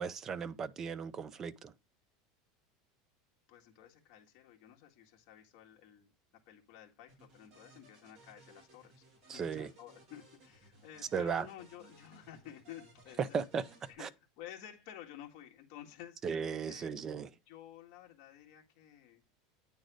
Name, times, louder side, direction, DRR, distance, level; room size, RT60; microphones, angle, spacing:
voice 1, 0.0-1.7 9.3-9.7 11.1-11.5 13.2-13.6 14.0-14.1 16.2-17.3, right 6 dB, 20° right, 0.4 m, -36 dB
voice 2, 3.5-13.4 13.9-14.1 14.4-16.2 16.7-17.1 17.5-19.2, left 11 dB, 45° left, 1.8 m, -53 dB
sound 1, 7.1-13.9, right 2 dB, 35° right, 2.7 m, -61 dB
9.1 x 3.9 x 4.8 m
supercardioid pair, 180°, 2 cm